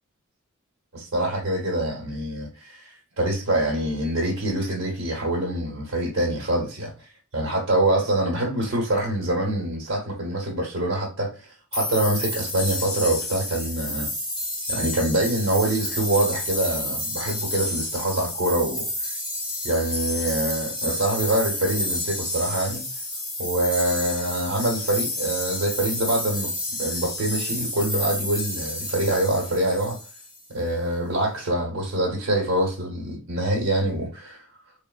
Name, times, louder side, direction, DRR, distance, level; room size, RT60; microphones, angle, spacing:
voice 1, 0.9-6.9 7.3-11.3 11.7-14.1 14.7-19.1 19.6-22.8 23.4-26.5 26.8-30.0 30.5-34.4, right 1 dB, 70° right, 1.0 m, -25 dB
sound 1, 11.7-30.4, left 1 dB, 20° left, 1.2 m, -30 dB
3.4 x 2.1 x 2.2 m
head